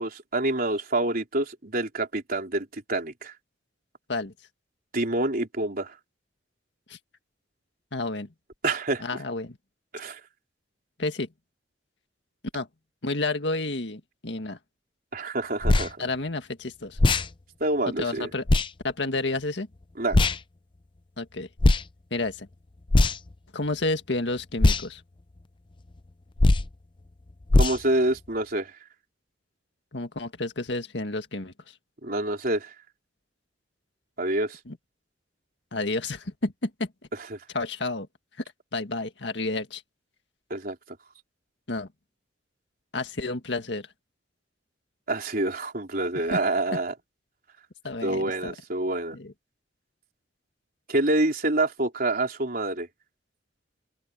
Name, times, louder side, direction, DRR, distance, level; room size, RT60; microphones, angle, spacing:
voice 1, 0.0-3.3 4.9-6.0 8.6-9.0 9.9-10.2 15.1-16.0 17.6-18.3 20.0-20.2 27.5-28.7 32.0-32.7 34.2-34.6 37.1-37.4 40.5-41.0 45.1-46.9 48.0-49.2 50.9-52.9, right 2 dB, 50° right, 3.9 m, -27 dB
voice 2, 7.9-8.3 9.0-9.6 11.0-11.3 12.5-12.7 13.0-14.6 16.0-17.0 18.0-18.4 18.8-19.7 21.2-21.5 22.1-22.5 23.5-25.0 29.9-31.5 34.7-34.8 35.7-36.9 37.5-38.1 38.7-39.8 41.7-41.9 42.9-43.9 46.3-46.4 47.8-48.6 49.1-49.3, left 2 dB, 70° left, 1.9 m, -30 dB
sound 1, 15.6-15.9 17.0-17.3 18.5-18.7 20.1-20.4 21.6-21.8 22.9-23.3 24.6-24.8 26.4-26.7 27.5-27.8, left 2 dB, 25° left, 0.5 m, -19 dB
open air
head